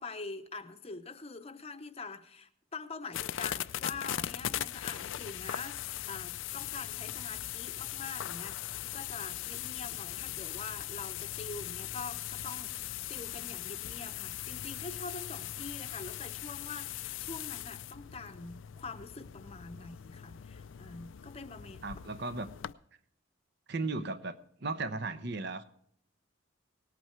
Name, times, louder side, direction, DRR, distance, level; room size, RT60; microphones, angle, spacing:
voice 1, 0.0-5.8 6.0-21.8, left 3 dB, 30° left, 8 dB, 0.8 m, -45 dB
sound 1, 3.1-22.7, left 12 dB, 65° left, 0.4 m, -40 dB
voice 2, 21.8-22.5 23.7-25.6, right 3 dB, 55° right, 12 dB, 0.8 m, -36 dB
18.5 x 8.6 x 4.5 m, 0.68 s
head